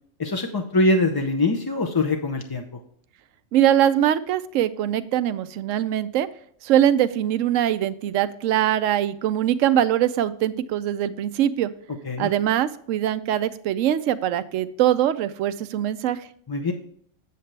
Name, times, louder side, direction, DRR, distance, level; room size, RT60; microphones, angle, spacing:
voice 1, 0.2-2.8 12.0-12.3 16.5-16.7, left 2 dB, 30° left, 4 dB, 0.4 m, -23 dB
voice 2, 3.5-6.3 6.6-11.7 12.2-16.2, right 11 dB, 80° right, 13 dB, 0.9 m, -22 dB
8.0 x 7.5 x 3.3 m, 0.62 s
omnidirectional pair, 1.3 m